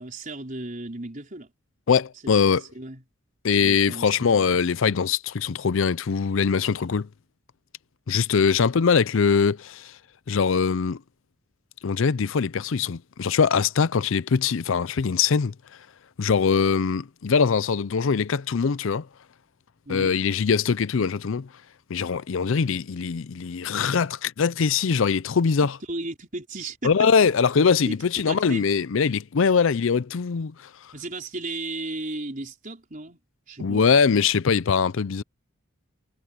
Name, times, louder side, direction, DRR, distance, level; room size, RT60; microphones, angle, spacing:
voice 1, 0.0-1.5 2.7-3.0 3.6-4.5 19.9-20.2 25.6-26.9 27.8-28.0 28.3-28.7 30.9-33.2 33.5-33.9, right 2 dB, 40° right, 4.7 m, -35 dB
voice 2, 1.9-2.6 3.4-7.1 8.1-9.9 10.3-11.0 11.8-15.5 16.2-19.1 19.9-21.5 21.9-25.8 26.8-30.5 33.6-35.2, left 6 dB, 65° left, 0.5 m, -22 dB
head